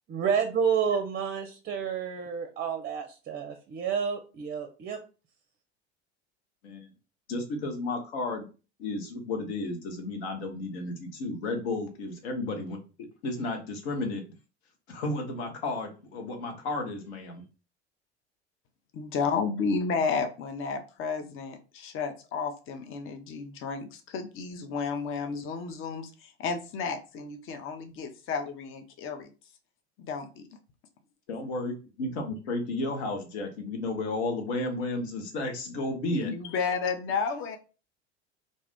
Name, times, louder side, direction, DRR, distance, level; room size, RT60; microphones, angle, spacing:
voice 1, 0.1-5.0, right 7 dB, 30° right, 5 dB, 0.5 m, -29 dB
voice 2, 7.3-8.4 8.8-12.8 13.2-14.2 14.9-17.4 31.3-36.3, left 2 dB, 70° left, 3 dB, 0.9 m, -33 dB
voice 3, 18.9-29.3 30.0-30.4 36.1-37.6, left 5 dB, 40° left, 6 dB, 0.6 m, -32 dB
2.6 x 2.4 x 3.5 m, 0.33 s
hypercardioid pair, 75°, 34 cm